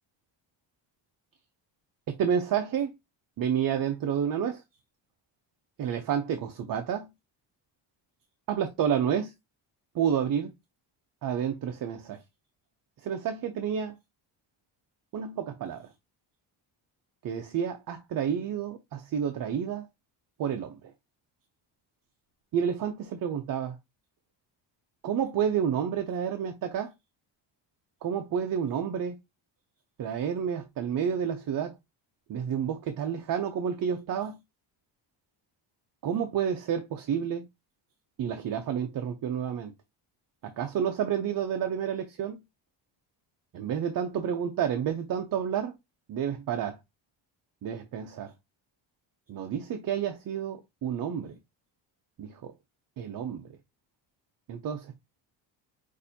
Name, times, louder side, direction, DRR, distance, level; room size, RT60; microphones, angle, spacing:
voice 1, 2.1-2.9 3.4-4.6 5.8-7.1 8.5-9.3 9.9-10.5 11.2-12.2 13.0-14.0 15.1-15.9 17.2-19.9 20.4-20.8 22.5-23.8 25.0-26.9 28.0-29.2 30.0-31.8 32.3-34.4 36.0-37.5 38.2-39.7 40.4-42.4 43.5-45.7 46.1-46.8 47.6-48.3 49.3-51.4 52.2-52.3 53.0-53.5 54.5-54.9, right 8 dB, 45° right, 0.7 m, -30 dB
6.5 x 2.7 x 2.7 m
cardioid pair, 160°, 47 cm